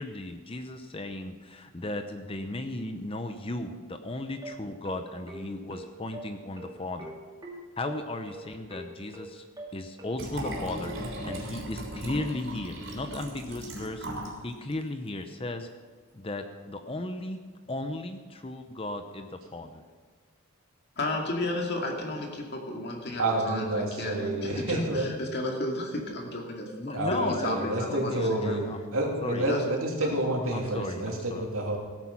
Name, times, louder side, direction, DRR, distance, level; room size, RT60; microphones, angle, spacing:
voice 1, 0.0-7.1 7.8-9.4 9.7-14.1 14.4-15.7 16.1-17.4 17.7-19.8 26.8-29.5 30.5-31.5, left 2 dB, 25° left, 7 dB, 0.6 m, -36 dB
sound 1, 4.4-11.4, right 1 dB, 20° right, 2.3 m, -43 dB
Liquid, 10.1-14.4 14.7-14.8, equal, 60° right, 3.6 m, -37 dB
voice 2, 21.0-28.6 29.3-29.6 30.0-30.2, left 1 dB, 50° left, 1 dB, 2.3 m, -33 dB
voice 3, 23.2-25.1 26.9-31.8, right 1 dB, 75° right, 0 dB, 2.9 m, -29 dB
16.5 x 9.1 x 5.8 m, 1.5 s
head